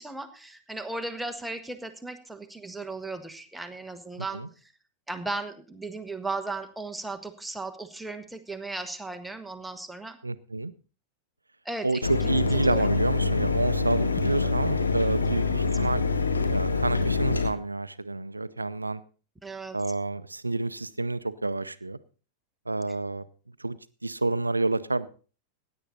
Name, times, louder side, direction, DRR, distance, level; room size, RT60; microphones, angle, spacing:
voice 1, 0.0-4.7 5.1-10.2 11.6-12.9 15.3-15.6 19.4-19.8, right 3 dB, 5° right, 8 dB, 1.2 m, -36 dB
voice 2, 10.2-10.7 11.8-16.0 16.5-19.0 19.7-22.0 22.7-23.2 23.6-25.1, right 2 dB, 80° right, 15 dB, 0.6 m, -29 dB
Mechanisms, 12.0-17.5, left 4 dB, 75° left, 1.3 m, -25 dB
16.0 x 9.7 x 4.0 m, 0.36 s
figure-of-eight pair, 90°, 0 cm